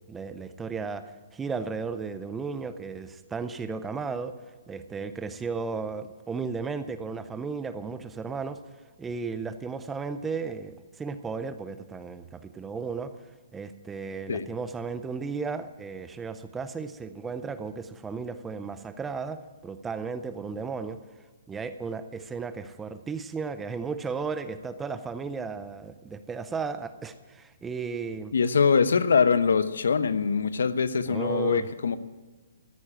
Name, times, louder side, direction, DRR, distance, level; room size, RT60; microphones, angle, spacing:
voice 1, 0.0-4.4 4.7-8.6 9.0-13.1 13.5-21.0 21.5-28.3 31.1-31.7, right 5 dB, 5° right, 11 dB, 0.4 m, -34 dB
voice 2, 28.3-32.0, left 5 dB, 80° left, 14 dB, 0.9 m, -23 dB
13.5 x 9.5 x 8.8 m, 1.3 s
hypercardioid pair, 170°, 0 cm